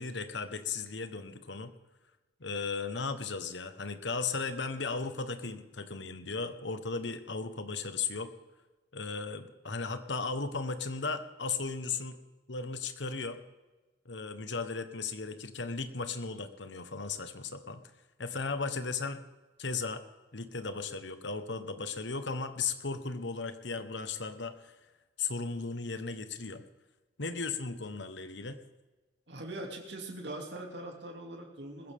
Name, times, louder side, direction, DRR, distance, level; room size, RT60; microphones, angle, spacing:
voice 1, 0.0-1.7 2.4-8.3 8.9-12.2 12.5-13.4 14.0-17.8 18.2-19.2 19.6-20.0 20.3-24.7 25.2-26.6 27.2-28.6, left 4 dB, 75° left, 9 dB, 1.3 m, -36 dB
voice 2, 29.3-31.9, right 1 dB, 70° right, 1 dB, 2.8 m, -41 dB
20.5 x 15.5 x 3.7 m, 1.2 s
head